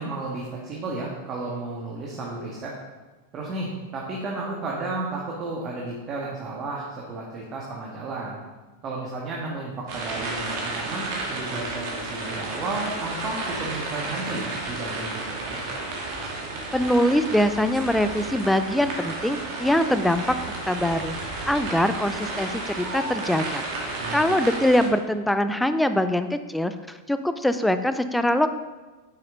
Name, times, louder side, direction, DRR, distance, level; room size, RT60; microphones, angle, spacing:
voice 1, 0.0-2.7 3.3-8.4 8.8-15.2 15.5-15.6 23.9-24.3, right 2 dB, 30° right, -3 dB, 1.7 m, -33 dB
sound 1, 9.9-24.9, right 2 dB, 45° right, 2.4 m, -32 dB
voice 2, 16.7-20.4 20.7-28.5, left 1 dB, 5° left, 10 dB, 0.6 m, -23 dB
9.7 x 8.4 x 4.0 m, 1.2 s
figure-of-eight pair, 90°, 0 cm